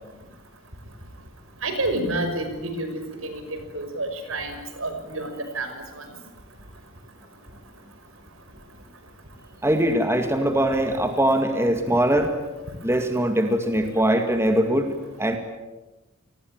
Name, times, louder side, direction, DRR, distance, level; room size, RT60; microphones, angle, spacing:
voice 1, 1.6-5.7, right 2 dB, 70° right, 7 dB, 5.9 m, -29 dB
voice 2, 9.6-12.3 12.8-15.4, right 1 dB, 15° right, 6 dB, 2.1 m, -22 dB
29.0 x 20.0 x 9.1 m, 1.1 s
head